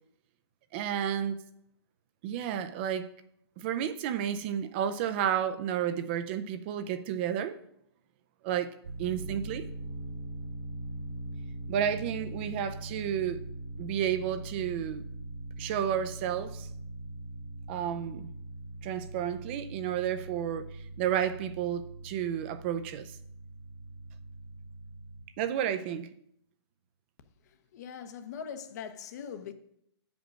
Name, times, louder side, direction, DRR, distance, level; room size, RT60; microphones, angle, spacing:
voice 1, 0.7-1.4 2.2-3.1 3.6-7.6 8.4-8.7 9.0-9.7 11.7-13.4 13.8-15.1 15.6-16.7 17.7-18.3 18.8-23.2 25.4-26.1, right 9 dB, 25° right, 0.5 m, -31 dB
sound 1, 8.8-25.2, right 2 dB, 70° right, 2.0 m, -42 dB
voice 2, 27.7-29.5, left 7 dB, 40° left, 0.8 m, -41 dB
8.8 x 5.2 x 6.1 m
hypercardioid pair, 155°, 14 cm